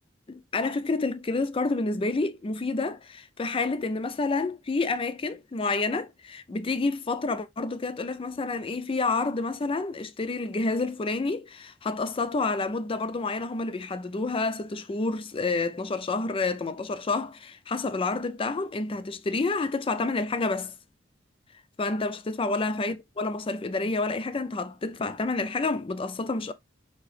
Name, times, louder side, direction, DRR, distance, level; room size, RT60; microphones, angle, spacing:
voice 1, 0.3-20.7 21.8-26.5, left 3 dB, 30° left, 0.4 m, -29 dB
4.9 x 2.8 x 3.1 m
head